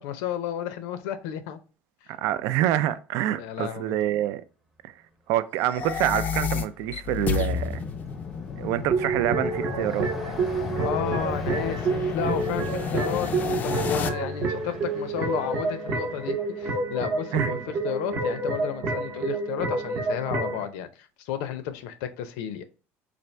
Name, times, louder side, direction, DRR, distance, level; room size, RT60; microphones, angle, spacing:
voice 1, 0.0-1.6 2.0-2.1 3.4-3.9 10.8-22.6, left 9 dB, 85° left, 0.6 m, -32 dB
voice 2, 2.2-4.4 4.8-4.9 5.3-7.8 8.6-10.1 17.3-17.6, right 13 dB, 65° right, 0.3 m, -26 dB
sound 1, 5.6-14.1, left 7 dB, 30° left, 0.4 m, -31 dB
Car passing by, 6.3-16.8, right 1 dB, 5° right, 0.7 m, -44 dB
sound 2, 8.9-20.6, right 3 dB, 40° right, 0.7 m, -29 dB
4.2 x 2.5 x 3.2 m
cardioid pair, 150°, 5 cm